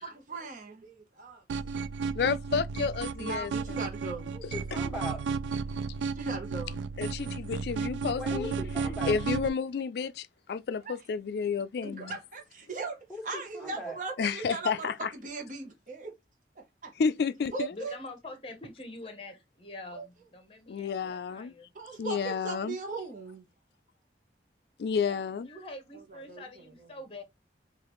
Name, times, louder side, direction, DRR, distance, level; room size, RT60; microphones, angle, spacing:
voice 1, 0.0-1.4 3.2-4.3 5.7-5.8 6.1-6.8 10.8-10.9 11.8-13.0 13.2-16.1 16.6-16.9 17.5-18.0 19.9-20.0 21.8-23.5 25.9-26.9, right 3 dB, 45° right, 0.9 m, -39 dB
sound 1, 1.5-9.5, right 5 dB, 85° right, 0.3 m, -33 dB
voice 2, 2.1-3.8 4.7-4.8 7.0-8.6 9.0-12.2 14.2-15.1 17.0-17.7 20.7-21.5 22.0-22.8 24.8-25.5, left 5 dB, 60° left, 0.3 m, -31 dB
voice 3, 4.3-5.2 8.2-9.2 13.1-14.0, left 1 dB, ahead, 1.6 m, -39 dB
voice 4, 17.7-21.7 25.0-27.2, left 2 dB, 30° left, 0.9 m, -45 dB
4.9 x 2.4 x 3.0 m
head